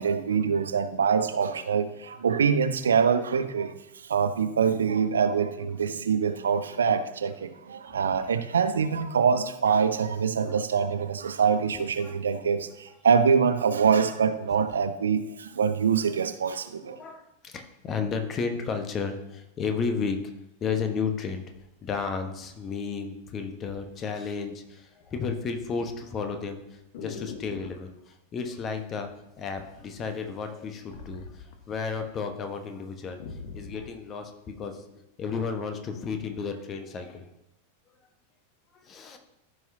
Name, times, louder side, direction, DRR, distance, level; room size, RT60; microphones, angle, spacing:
voice 1, 0.0-3.7 4.1-17.0, right 6 dB, 70° right, 11 dB, 0.5 m, -24 dB
voice 2, 6.2-6.6 7.8-8.0 10.4-10.6 11.6-12.2 16.8-20.2 20.6-21.4 21.8-26.6 27.0-29.1 29.4-34.3 34.6-34.8 35.2-37.2 38.9-39.2, left 5 dB, 30° left, 6 dB, 1.2 m, -33 dB
sound 1, 21.5-23.0 23.7-23.9 24.2-24.7 25.0-27.9 29.0-29.5 29.8-32.1 32.4-32.5 32.8-34.0 34.6-34.7, left 4 dB, 50° left, 1.2 m, -44 dB
14.0 x 5.6 x 2.8 m, 0.88 s
figure-of-eight pair, 90°, 0 cm